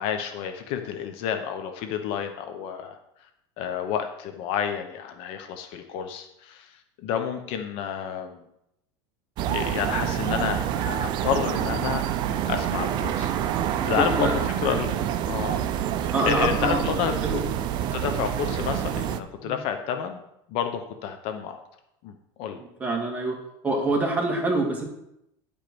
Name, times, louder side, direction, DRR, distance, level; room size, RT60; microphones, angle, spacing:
voice 1, 0.0-3.0 3.6-8.4 9.5-14.9 15.3-15.6 16.0-17.1 17.9-20.2 20.5-21.6 22.0-22.6, left 8 dB, 45° left, 6 dB, 0.9 m, -30 dB
sound 1, 9.4-19.2, right 10 dB, 35° right, 0.6 m, -27 dB
voice 2, 13.6-14.4 15.0-15.1 16.1-17.4 19.4-19.6 22.6-23.4 23.6-24.8, right 2 dB, 15° right, 0 dB, 2.0 m, -27 dB
10.0 x 5.3 x 6.1 m, 0.81 s
supercardioid pair, 165°, 13 cm